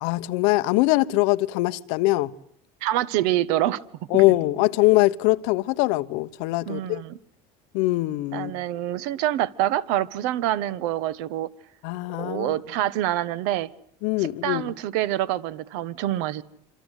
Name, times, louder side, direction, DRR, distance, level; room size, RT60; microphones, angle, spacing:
voice 1, 0.0-2.3 4.1-7.0 7.7-8.5 11.8-12.5 14.0-14.6, left 19 dB, 70° left, 1.2 m, -22 dB
voice 2, 2.8-3.8 4.1-4.2 6.7-7.2 8.3-11.5 12.2-13.7 14.2-16.4, right 13 dB, 70° right, 1.4 m, -26 dB
26.5 x 26.0 x 8.3 m
cardioid pair, 175°, 14 cm